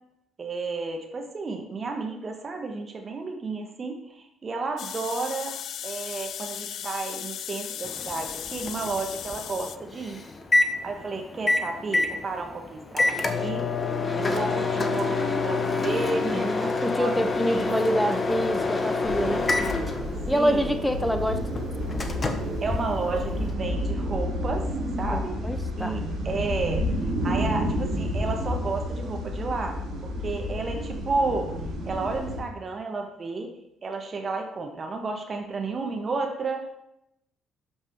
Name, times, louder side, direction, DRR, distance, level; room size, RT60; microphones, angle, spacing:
voice 1, 0.4-5.6 5.8-10.2 10.8-13.7 14.1-17.2 17.5-17.9 19.2-19.5 19.7-19.9 20.3-20.8 22.6-25.4 25.8-26.9 27.2-31.5 31.8-33.5 33.8-36.7, right 3 dB, 35° right, 3 dB, 1.6 m, -32 dB
sound 1, 4.8-9.8, left 9 dB, 55° left, 0.4 m, -36 dB
Microwave oven, 7.8-23.5, left 3 dB, 30° left, 1.1 m, -28 dB
voice 2, 16.2-19.5 20.3-21.4 25.1-26.0, equal, 5° left, 9 dB, 1.1 m, -26 dB
sound 2, 19.0-32.4, equal, 60° right, 2.8 m, -30 dB
12.0 x 5.4 x 4.8 m, 0.81 s
figure-of-eight pair, 50°, 0 cm